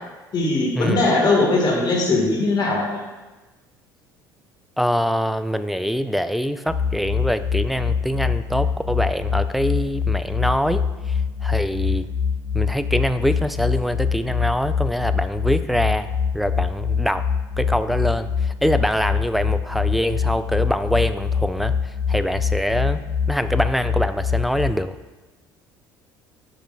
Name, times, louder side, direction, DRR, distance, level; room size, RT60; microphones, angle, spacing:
voice 1, 0.3-3.0, left 2 dB, 40° left, -2 dB, 1.5 m, -20 dB
voice 2, 4.8-10.8 11.4-12.1 12.5-17.3 17.6-21.7 22.1-25.0, equal, ahead, 10 dB, 0.3 m, -24 dB
sound 1, 6.7-24.7, left 6 dB, 65° left, 1.9 m, -24 dB
10.5 x 5.1 x 2.3 m, 1.2 s
figure-of-eight pair, 60°, 11 cm